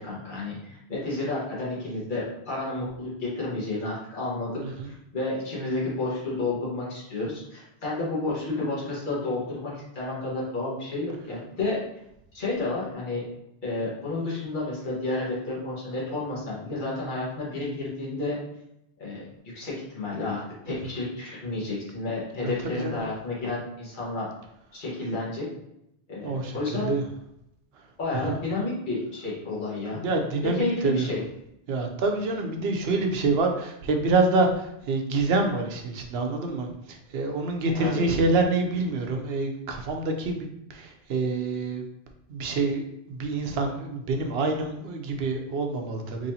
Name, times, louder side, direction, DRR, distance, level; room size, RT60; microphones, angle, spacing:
voice 1, 0.0-11.8 12.3-13.2 13.6-18.4 19.0-19.3 19.5-24.3 24.7-25.4 26.1-26.9 28.0-30.0 30.5-31.2 37.8-38.0, left 2 dB, 50° left, -6 dB, 1.3 m, -31 dB
voice 2, 26.2-27.0 28.3-28.4 29.9-31.1 31.7-41.8 42.3-46.3, right 3 dB, 70° right, 4 dB, 0.8 m, -27 dB
4.1 x 3.0 x 2.7 m, 0.81 s
omnidirectional pair, 1.1 m